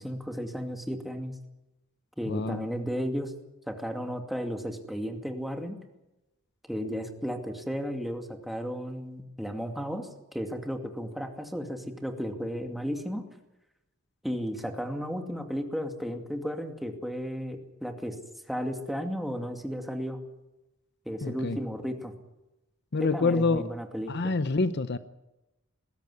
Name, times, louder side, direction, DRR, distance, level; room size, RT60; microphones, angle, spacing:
voice 1, 0.0-1.4 2.2-3.3 3.7-5.8 6.7-13.2 14.2-18.2 18.5-20.2 21.1-22.1 23.0-24.3, equal, ahead, 4 dB, 2.4 m, -34 dB
voice 2, 2.3-2.6 21.2-21.6 22.9-23.6 24.1-25.0, left 3 dB, 55° left, 12 dB, 0.8 m, -27 dB
20.5 x 16.0 x 9.7 m, 0.97 s
head